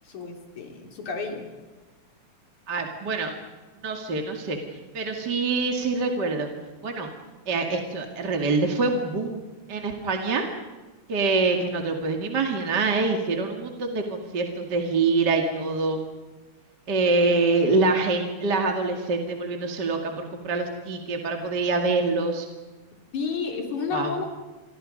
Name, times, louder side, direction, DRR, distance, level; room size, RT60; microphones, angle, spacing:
voice 1, 0.0-1.5 23.1-24.2, left 5 dB, 70° left, 3 dB, 4.7 m, -31 dB
voice 2, 2.7-3.3 3.8-4.6 4.9-6.5 6.8-7.1 7.5-9.4 9.7-10.4 11.1-16.0 16.9-22.5 23.9-24.1, right 3 dB, 35° right, 3 dB, 2.6 m, -25 dB
29.5 x 23.0 x 5.4 m, 1.3 s
omnidirectional pair, 3.5 m